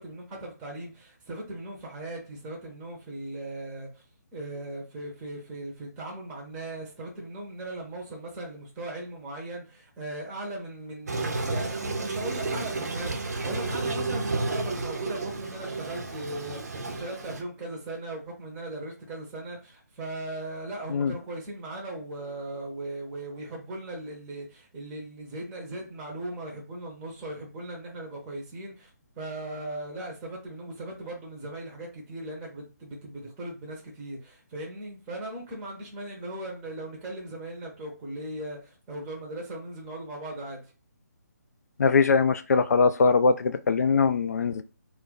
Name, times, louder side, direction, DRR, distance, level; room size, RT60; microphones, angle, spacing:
voice 1, 0.0-4.0 4.3-28.9 29.2-40.6, right 1 dB, 15° right, 0.6 m, -38 dB
Toilet flush, 11.1-17.4, right 3 dB, 70° right, 0.6 m, -31 dB
voice 2, 41.8-44.6, left 4 dB, 65° left, 0.3 m, -22 dB
2.3 x 2.2 x 3.7 m
figure-of-eight pair, 155°, 9 cm